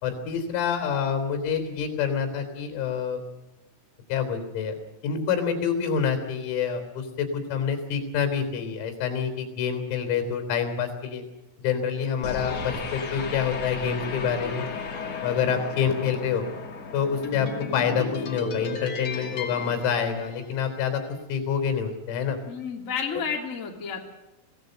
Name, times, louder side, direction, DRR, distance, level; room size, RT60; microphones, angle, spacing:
voice 1, 0.0-3.2 4.1-4.7 5.0-11.2 11.6-14.7 15.2-16.5 16.9-21.0 21.3-22.4, left 7 dB, 85° left, 7 dB, 6.3 m, -27 dB
sound 1, 12.2-20.8, left 4 dB, 40° left, 2.7 m, -34 dB
voice 2, 22.5-24.0, left 6 dB, 20° left, 1 dB, 2.2 m, -31 dB
24.5 x 17.5 x 7.9 m, 0.96 s
omnidirectional pair, 6.0 m